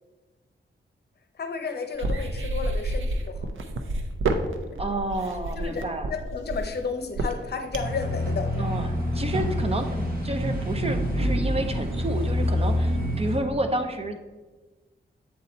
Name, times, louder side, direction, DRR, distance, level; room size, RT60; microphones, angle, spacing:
voice 1, 1.4-3.4 5.6-5.8 6.1-8.7 12.9-13.1, left 5 dB, 55° left, 6 dB, 0.7 m, -32 dB
sound 1, 1.9-8.0, right 2 dB, 85° right, 0.6 m, -29 dB
voice 2, 4.8-6.1 8.6-14.2, right 2 dB, 30° right, 6 dB, 0.5 m, -30 dB
sound 2, 7.8-13.4, left 1 dB, 50° right, 1.2 m, -26 dB
7.6 x 4.1 x 4.1 m, 1.2 s
wide cardioid pair, 165°, 20 cm